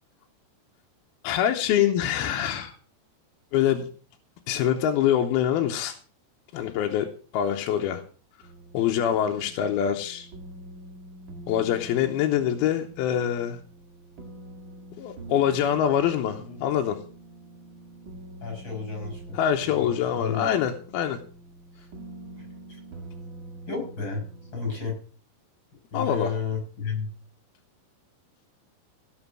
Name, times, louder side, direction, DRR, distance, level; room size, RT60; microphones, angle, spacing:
voice 1, 1.2-2.7 3.5-3.9 4.5-6.0 6.5-7.1 7.3-8.0 8.7-10.3 11.5-13.6 15.0-17.0 19.3-21.2 25.9-26.3, left 10 dB, 75° left, 4 dB, 2.6 m, -24 dB
sound 1, 8.4-24.8, right 2 dB, 50° right, 1.5 m, -45 dB
voice 2, 18.4-20.5 21.8-21.9 23.7-24.2 24.5-25.0 25.9-27.1, left 5 dB, 25° left, 2 dB, 6.5 m, -32 dB
17.0 x 6.1 x 6.0 m, 0.40 s
omnidirectional pair, 5.0 m